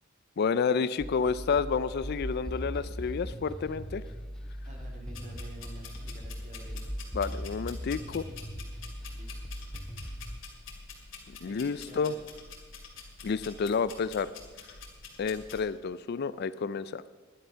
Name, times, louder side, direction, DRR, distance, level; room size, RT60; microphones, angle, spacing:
voice 1, 0.4-4.0 7.1-8.2 11.3-12.1 13.2-14.3 15.2-17.0, left 5 dB, 50° left, 16 dB, 0.4 m, -30 dB
sound 1, 1.0-10.3, equal, 5° left, 0.9 m, -39 dB
voice 2, 4.6-6.9 9.1-9.5 11.4-12.2, right 1 dB, 35° right, 0 dB, 2.6 m, -49 dB
sound 2, 5.1-15.6, left 5 dB, 70° left, 2.5 m, -48 dB
11.5 x 11.0 x 5.7 m, 1.3 s
head